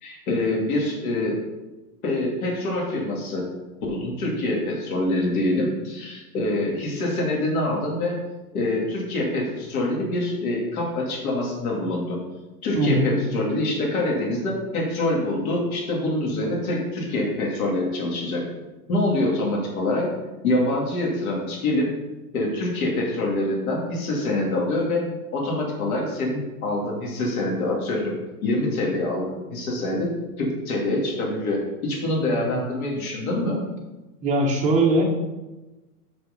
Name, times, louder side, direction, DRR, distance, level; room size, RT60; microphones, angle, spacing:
voice 1, 0.0-1.4 2.0-3.4 3.9-8.2 8.5-12.2 12.6-18.4 18.9-20.1 20.4-21.9 22.3-25.0 25.3-28.2 28.4-30.1 30.4-33.6, left 1 dB, 60° left, -3 dB, 2.5 m, -25 dB
voice 2, 12.8-13.1 32.2-32.6 34.2-35.0, right 2 dB, 15° right, -2 dB, 1.1 m, -21 dB
5.9 x 5.6 x 5.2 m, 1.1 s
hypercardioid pair, 155°, 49 cm